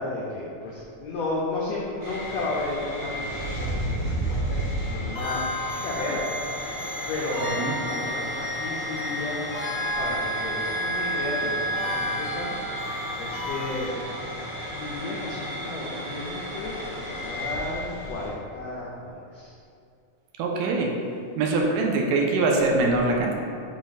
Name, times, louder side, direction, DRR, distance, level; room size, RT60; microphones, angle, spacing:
voice 1, 0.0-5.4 5.8-6.2 7.1-9.4 10.0-12.5 13.2-14.0 14.7-19.5, left 2 dB, 85° left, -4 dB, 1.5 m, -33 dB
sound 1, 2.0-18.3, equal, 50° right, 2.0 m, -33 dB
sound 2, 5.2-13.9, equal, 60° left, 1.8 m, -32 dB
voice 2, 20.4-20.9 21.4-23.3, right 3 dB, 85° right, 0 dB, 2.2 m, -23 dB
6.2 x 4.1 x 4.0 m, 2.4 s
omnidirectional pair, 3.9 m